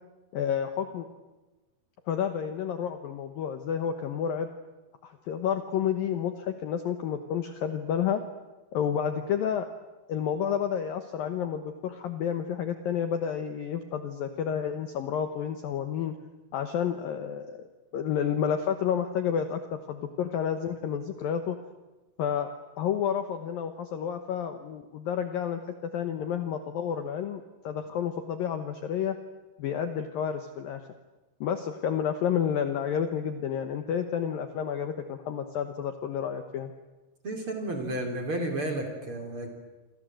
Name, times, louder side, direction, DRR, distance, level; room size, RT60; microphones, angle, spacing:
voice 1, 0.3-1.1 2.1-4.5 5.0-8.2 8.7-9.7 10.1-16.2 16.5-17.7 17.9-21.6 22.2-22.5 22.8-29.2 29.6-30.8 31.4-36.7, left 8 dB, 85° left, 8 dB, 2.0 m, -30 dB
voice 2, 37.2-39.5, right 1 dB, 30° right, 4 dB, 3.6 m, -32 dB
28.5 x 26.5 x 7.8 m, 1.1 s
omnidirectional pair, 5.9 m